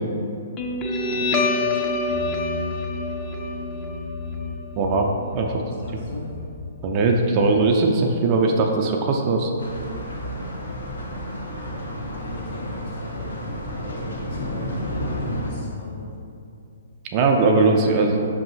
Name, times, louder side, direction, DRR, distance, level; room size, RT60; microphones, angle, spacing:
Guitar, 0.6-7.6, left 3 dB, 25° left, 0.4 m, -27 dB
voice 1, 1.1-1.5 5.7-6.3 11.5-16.1, left 1 dB, 50° left, -5 dB, 1.3 m, -38 dB
voice 2, 4.8-5.6 6.8-9.5 17.1-18.3, right 3 dB, 35° right, 2 dB, 0.3 m, -20 dB
sound 1, 9.6-15.5, equal, 80° left, 0.8 m, -31 dB
5.4 x 2.7 x 2.7 m, 2.5 s
figure-of-eight pair, 125°, 0 cm